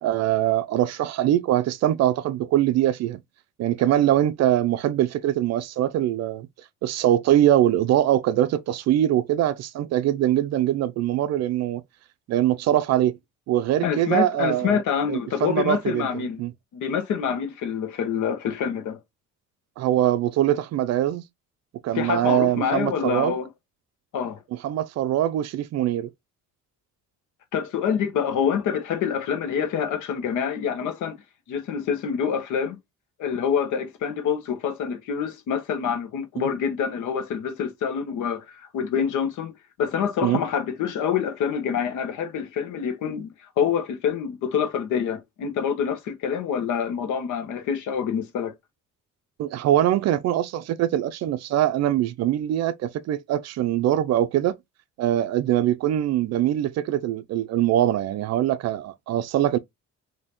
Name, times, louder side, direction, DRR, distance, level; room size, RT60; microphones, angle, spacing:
voice 1, 0.0-3.2 3.6-6.5 6.8-11.8 12.3-13.2 13.5-14.8 15.1-16.5 19.8-21.2 21.8-23.4 24.5-26.1 36.4-36.5 40.2-40.4 49.4-54.6 55.0-59.6, right 12 dB, 60° right, 0.4 m, -23 dB
voice 2, 13.8-16.4 16.7-19.0 21.9-23.5 24.1-24.4 27.5-31.2 31.5-32.8 33.2-39.5 39.8-48.5, left 7 dB, 75° left, 1.1 m, -26 dB
5.2 x 2.8 x 2.9 m
cardioid pair, 160°, 31 cm